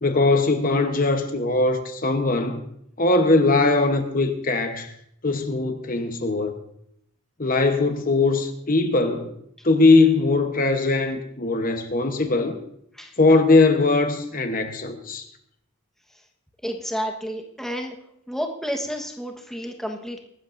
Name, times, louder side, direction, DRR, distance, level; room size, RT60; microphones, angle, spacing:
voice 1, 0.0-2.6 3.0-4.9 5.2-6.6 7.4-9.3 9.6-12.6 13.2-15.3, left 3 dB, 40° left, 1.0 m, -20 dB
voice 2, 16.6-18.0 18.3-20.2, equal, ahead, 1.2 m, -30 dB
24.0 x 13.0 x 2.6 m
head